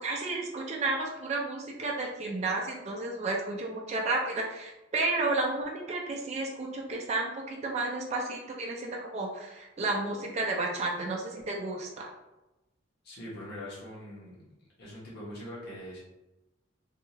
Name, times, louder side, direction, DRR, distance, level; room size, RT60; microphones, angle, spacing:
voice 1, 0.0-12.1, right 2 dB, 35° right, 0 dB, 0.4 m, -32 dB
voice 2, 13.0-14.4 14.8-16.0, left 1 dB, 55° left, -7 dB, 1.0 m, -42 dB
2.7 x 2.4 x 2.8 m, 0.99 s
head